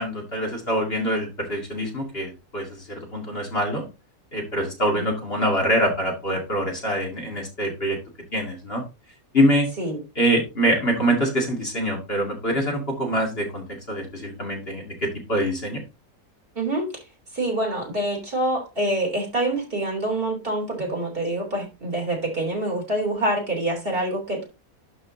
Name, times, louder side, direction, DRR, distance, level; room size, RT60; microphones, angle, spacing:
voice 1, 0.0-3.9 4.3-8.0 8.3-8.8 9.3-9.7 10.2-15.8, equal, 40° left, 0 dB, 2.4 m, -24 dB
voice 2, 16.5-17.0 17.3-24.4, right 1 dB, 35° right, 0 dB, 3.3 m, -26 dB
12.0 x 5.4 x 2.7 m, 0.28 s
omnidirectional pair, 1.6 m